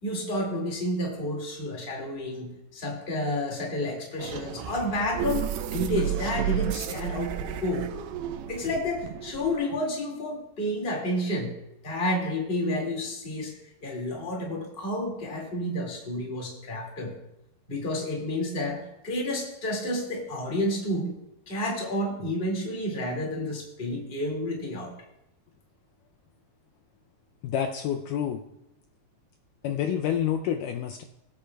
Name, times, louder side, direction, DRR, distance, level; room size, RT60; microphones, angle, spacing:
voice 1, 0.0-7.9 8.5-11.6 11.8-13.5 13.8-17.2 17.7-21.1 21.5-24.9, left 1 dB, 25° left, -1 dB, 1.3 m, -30 dB
sound 1, 4.2-9.6, right 10 dB, 80° right, 2.4 m, -32 dB
voice 2, 27.4-28.4 29.6-31.0, left 9 dB, 90° left, 4 dB, 1.8 m, -28 dB
21.5 x 8.5 x 2.3 m, 0.87 s
omnidirectional pair, 4.4 m